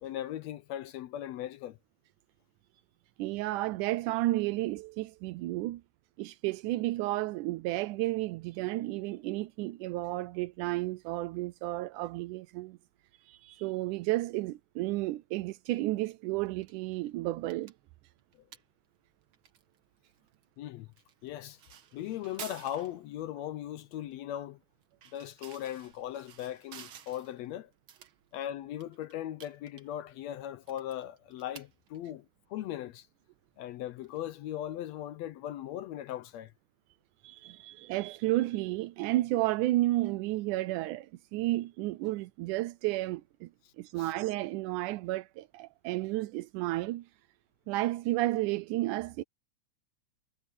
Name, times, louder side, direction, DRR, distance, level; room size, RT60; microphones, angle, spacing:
voice 1, 0.0-1.8 20.6-20.9 21.2-21.6 21.9-24.6 25.1-27.7 28.3-33.1 33.6-36.5 44.0-44.1, left 12 dB, 75° left, 1.7 m, -38 dB
voice 2, 3.2-5.8 6.2-12.8 13.3-17.7 37.2-43.5 43.8-47.0 47.7-49.2, right 17 dB, 85° right, 2.1 m, -32 dB
sound 1, 16.4-34.8, right 8 dB, 55° right, 1.7 m, -55 dB
omnidirectional pair, 3.5 m